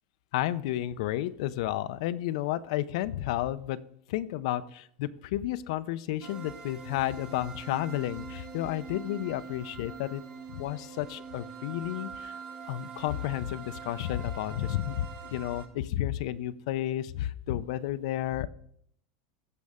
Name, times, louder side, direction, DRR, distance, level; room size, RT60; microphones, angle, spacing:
voice 1, 0.3-3.8 4.1-10.2 10.5-12.3 12.7-18.5, left 13 dB, 65° left, 15 dB, 0.5 m, -32 dB
sound 1, 6.2-15.7, right 6 dB, 30° right, 1.2 m, -44 dB
15.0 x 5.3 x 3.6 m, 0.65 s
supercardioid pair, 150°, 4 cm